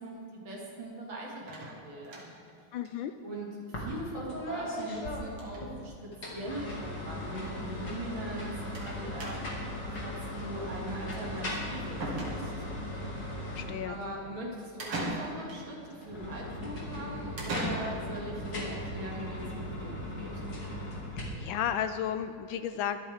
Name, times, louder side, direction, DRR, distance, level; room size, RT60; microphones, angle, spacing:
voice 1, 0.0-2.3 3.2-9.4 10.0-12.5 13.8-20.4, right 1 dB, 65° right, -3 dB, 3.0 m, -41 dB
sound 1, 1.5-2.5 2.8-2.9 3.2-3.3 3.5-3.6 4.8-5.0 5.3-5.7 6.5-6.6 6.9-7.0 8.7-8.9 9.2-9.7 11.5-11.6 12.0-12.8 14.8-15.7 17.4-18.3, right 1 dB, 80° right, 2.9 m, -38 dB
voice 2, 2.7-3.1 13.6-14.0 21.2-23.0, left 9 dB, 75° left, 10 dB, 1.2 m, -33 dB
sound 2, 3.7-3.9 4.1-5.7 6.1-14.2 15.9-21.2, left 1 dB, 55° left, 3.0 m, -38 dB
23.5 x 8.7 x 3.6 m, 2.5 s
omnidirectional pair, 2.3 m